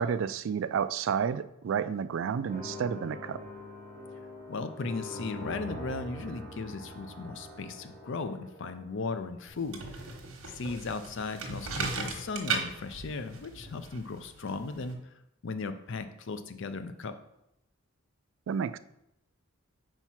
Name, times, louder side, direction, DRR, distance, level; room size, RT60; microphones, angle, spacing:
voice 1, 0.0-3.4 18.5-18.8, right 7 dB, 65° right, 14 dB, 0.3 m, -30 dB
sound 1, 2.4-9.5, left 1 dB, 45° left, 2.4 m, -44 dB
voice 2, 4.5-10.1 10.5-15.1 15.4-17.2, left 4 dB, 60° left, 10 dB, 0.5 m, -37 dB
sound 2, 9.5-14.9, right 4 dB, 90° right, 1.2 m, -37 dB
4.5 x 4.5 x 5.7 m, 0.82 s
head